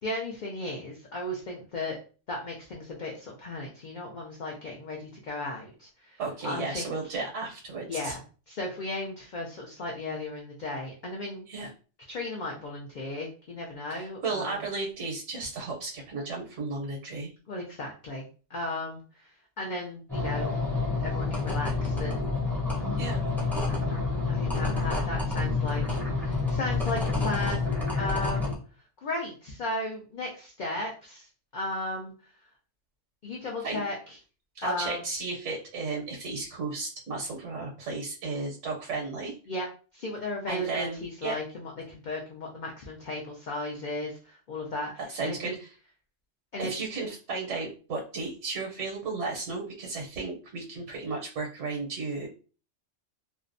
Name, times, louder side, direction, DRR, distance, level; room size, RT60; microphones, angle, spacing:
voice 1, 0.0-2.0 2.3-7.2 7.9-8.2 8.5-11.5 12.1-14.6 17.5-18.2 18.5-19.3 19.6-20.5 21.0-22.3 24.3-27.6 28.0-28.5 29.0-31.3 31.5-32.1 33.2-34.2 34.6-35.0 39.5-39.7 39.9-44.9 45.2-45.5 46.5-46.7, left 2 dB, 60° left, -1 dB, 0.5 m, -35 dB
voice 2, 6.2-8.1 11.5-11.7 13.9-17.3 23.0-23.2 33.6-33.8 34.5-39.4 40.5-41.4 45.0-45.7 46.6-52.3, right 3 dB, 75° right, -1 dB, 1.0 m, -34 dB
sound 1, 20.1-28.5, left 3 dB, ahead, 0.4 m, -28 dB
2.5 x 2.0 x 2.5 m, 0.37 s
omnidirectional pair, 1.3 m